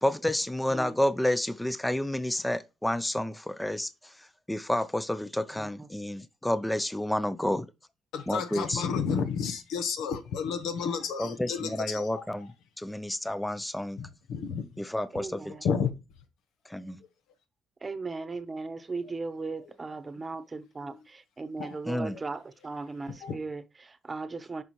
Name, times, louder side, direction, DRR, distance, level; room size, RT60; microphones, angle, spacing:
voice 1, 0.0-7.7 8.3-8.8 11.2-12.5 12.8-14.0 14.8-15.5 16.7-17.0 21.8-22.2, left 1 dB, 5° left, 0.5 m, -30 dB
voice 2, 8.1-12.2 14.0-14.7 15.6-15.9 20.8-21.0 21.6-21.8 22.1-22.2 23.1-23.4, left 6 dB, 85° left, 1.0 m, -31 dB
voice 3, 15.1-15.5 17.8-24.6, right 3 dB, 30° right, 0.9 m, -37 dB
9.5 x 5.5 x 3.1 m
cardioid pair, 90°, 0 cm